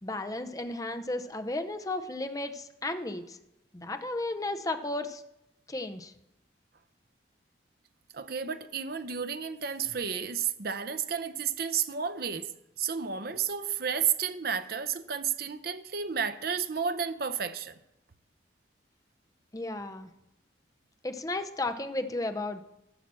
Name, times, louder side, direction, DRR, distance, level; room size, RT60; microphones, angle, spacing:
voice 1, 0.0-3.4 3.7-5.2 5.7-6.1 19.5-20.1 21.0-22.6, left 2 dB, 20° left, 7 dB, 0.6 m, -34 dB
voice 2, 8.1-12.5 12.8-17.7, right 7 dB, 55° right, 11 dB, 0.7 m, -32 dB
13.0 x 5.8 x 7.5 m, 0.86 s
head